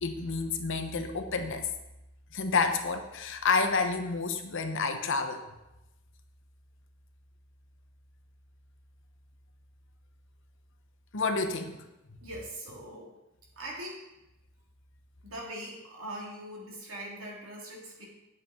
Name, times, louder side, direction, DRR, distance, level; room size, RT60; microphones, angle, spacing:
voice 1, 0.0-1.7 2.3-5.4 11.1-11.8, left 4 dB, 65° left, 6 dB, 1.0 m, -29 dB
voice 2, 12.2-13.1 13.5-14.0 15.2-18.1, right 1 dB, 75° right, -3 dB, 3.0 m, -41 dB
9.1 x 7.9 x 4.4 m, 0.94 s
head